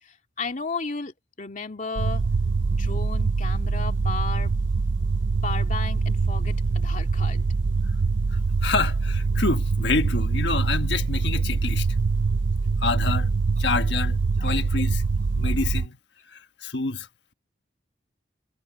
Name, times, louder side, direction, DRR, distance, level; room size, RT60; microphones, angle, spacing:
voice 1, 0.0-2.3 2.8-4.8 5.4-7.5 14.4-14.5, left 4 dB, 45° left, 2.5 m, -34 dB
sound 1, 2.0-15.9, right 4 dB, 80° right, 0.5 m, -24 dB
voice 2, 8.3-11.9 12.8-13.3 13.6-15.0 15.4-16.0 16.3-17.1, left 3 dB, 65° left, 1.4 m, -27 dB
head